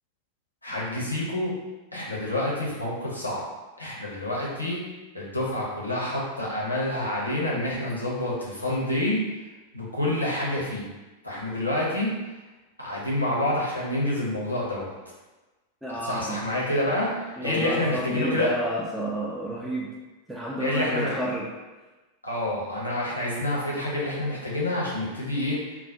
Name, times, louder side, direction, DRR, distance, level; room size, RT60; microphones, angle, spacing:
voice 1, 0.6-1.6 1.9-3.4 3.8-4.8 5.1-9.2 9.7-10.9 11.2-12.1 12.8-15.0 16.0-18.5 20.6-21.1 22.2-25.7, left 1 dB, 85° left, -5 dB, 0.6 m, -28 dB
voice 2, 15.8-16.5 17.4-20.0 20.3-21.5, right 1 dB, 5° right, -5 dB, 0.3 m, -30 dB
2.3 x 2.0 x 2.6 m, 1.2 s
figure-of-eight pair, 90°, 0 cm